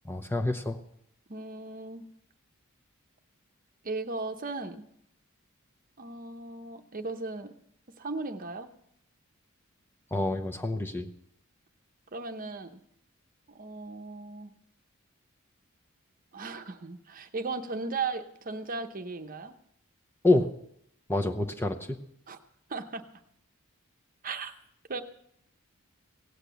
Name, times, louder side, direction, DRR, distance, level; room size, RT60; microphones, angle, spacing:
voice 1, 0.1-0.8 10.1-11.1 20.2-20.5 21.1-22.0, left 2 dB, 10° left, 4 dB, 0.8 m, -27 dB
voice 2, 1.3-2.0 3.8-4.8 6.0-7.5 8.0-8.7 12.1-12.8 13.5-14.5 16.3-19.5 22.3-22.4 22.7-23.0 24.2-24.5 24.9-25.0, right 3 dB, 40° right, 7 dB, 0.9 m, -36 dB
17.0 x 8.2 x 6.9 m, 0.73 s
head